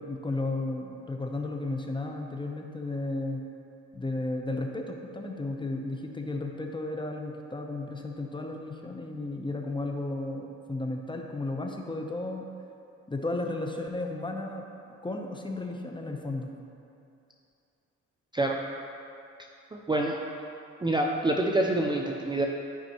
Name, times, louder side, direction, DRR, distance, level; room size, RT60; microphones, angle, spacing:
voice 1, 0.0-3.4 3.9-12.5 13.1-14.6 15.0-16.5, left 2 dB, 15° left, 2 dB, 0.8 m, -34 dB
voice 2, 19.7-20.2 20.8-22.5, right 1 dB, 15° right, 0 dB, 0.5 m, -26 dB
12.0 x 5.2 x 3.0 m, 2.6 s
cardioid pair, 90°, 30 cm